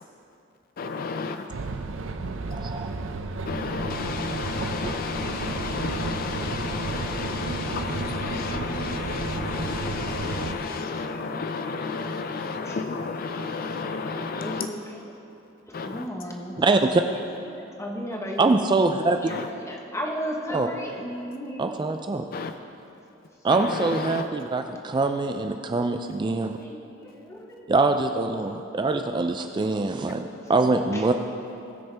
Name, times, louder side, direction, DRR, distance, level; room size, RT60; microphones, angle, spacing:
voice 1, 0.8-1.4 3.5-14.7 15.7-16.0 19.3-19.5 22.3-22.5 23.5-24.2, left 4 dB, 50° left, 7 dB, 0.4 m, -31 dB
sound 1, 1.5-10.6, right 3 dB, 70° right, 0.6 m, -32 dB
voice 2, 2.5-2.9 16.6-17.0 18.4-19.2 20.5-20.7 21.6-22.2 23.4-26.5 27.7-31.1, right 3 dB, 25° right, 6 dB, 0.3 m, -24 dB
voice 3, 12.6-13.0 14.4-15.1 15.7-18.6 19.2-21.8 26.6-27.7 30.9-31.2, equal, 15° left, 0 dB, 1.1 m, -35 dB
19.5 x 6.5 x 3.4 m, 2.8 s
head